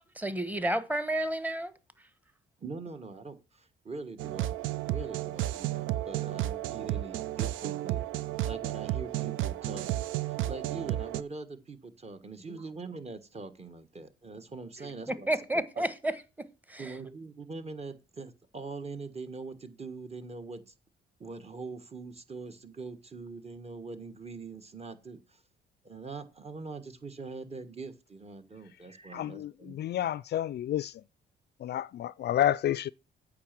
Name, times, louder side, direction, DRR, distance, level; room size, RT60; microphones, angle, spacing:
voice 1, 0.1-1.7 12.5-12.6 14.8-16.1 16.4-16.9, right 1 dB, 10° right, 1.2 m, -31 dB
voice 2, 2.6-4.6 4.9-8.1 8.5-9.9 10.2-15.3 15.8-15.9 16.8-20.7 21.2-25.4 25.8-29.7, right 3 dB, 30° right, 1.5 m, -43 dB
sound 1, 4.2-11.2, right 14 dB, 85° right, 0.5 m, -32 dB
voice 3, 29.1-30.9 31.6-32.9, left 11 dB, 55° left, 0.4 m, -30 dB
8.6 x 5.1 x 7.4 m
cardioid pair, 90°, 20 cm